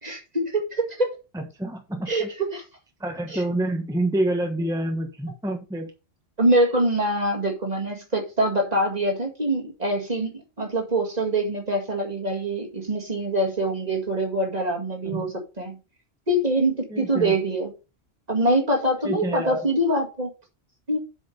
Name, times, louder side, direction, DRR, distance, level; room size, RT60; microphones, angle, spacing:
voice 1, 0.0-1.1 2.1-2.6 3.3-3.4 6.4-15.3 15.6-15.8 16.3-17.7 18.3-20.3 20.9-21.0, right 1 dB, 35° right, 2.0 m, -24 dB
voice 2, 1.3-2.3 3.0-5.9 15.0-15.3 16.9-17.4 19.0-19.7, right 1 dB, 5° right, 1.2 m, -27 dB
7.8 x 5.1 x 5.3 m
omnidirectional pair, 1.2 m